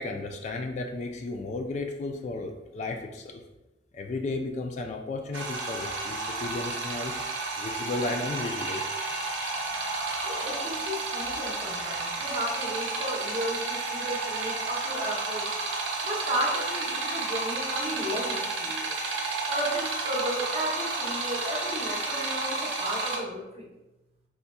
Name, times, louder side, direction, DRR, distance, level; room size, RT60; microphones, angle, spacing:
voice 1, 0.0-3.4 3.9-7.1 7.6-10.5, left 3 dB, 40° left, 4 dB, 0.3 m, -34 dB
sound 1, 5.3-23.2, right 3 dB, 90° right, 0.7 m, -31 dB
voice 2, 10.2-18.9 19.5-23.7, equal, 35° right, -2 dB, 0.8 m, -34 dB
4.1 x 3.5 x 2.2 m, 1.0 s
head